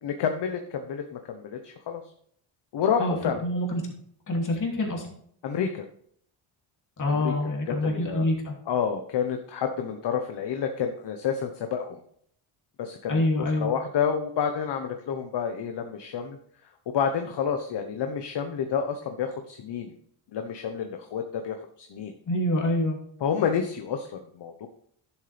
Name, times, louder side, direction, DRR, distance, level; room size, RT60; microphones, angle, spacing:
voice 1, 0.0-2.0 2.7-3.4 5.4-5.8 7.1-8.2 8.7-12.0 12.8-13.2 13.6-16.4 16.9-19.9 20.3-22.1 23.2-24.7, left 7 dB, 55° left, 6 dB, 1.0 m, -29 dB
voice 2, 3.0-3.8 4.3-5.1 7.0-8.5 13.1-13.7 22.3-23.0, left 1 dB, 40° left, 0 dB, 2.8 m, -26 dB
10.5 x 7.4 x 3.4 m, 0.63 s
cardioid pair, 135°, 48 cm